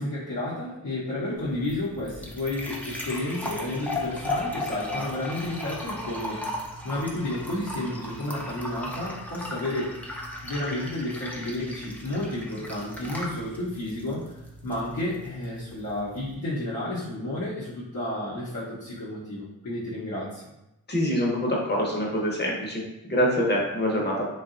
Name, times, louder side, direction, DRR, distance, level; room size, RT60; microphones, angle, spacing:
voice 1, 0.0-6.4 6.8-10.0 10.4-14.3 14.6-20.4, left 1 dB, 70° left, -10 dB, 0.8 m, -31 dB
sound 1, 1.4-16.3, left 1 dB, 5° left, 0.4 m, -36 dB
voice 2, 20.9-24.3, equal, 30° left, -2 dB, 0.8 m, -25 dB
2.7 x 2.3 x 2.5 m, 0.87 s
cardioid pair, 65°, 38 cm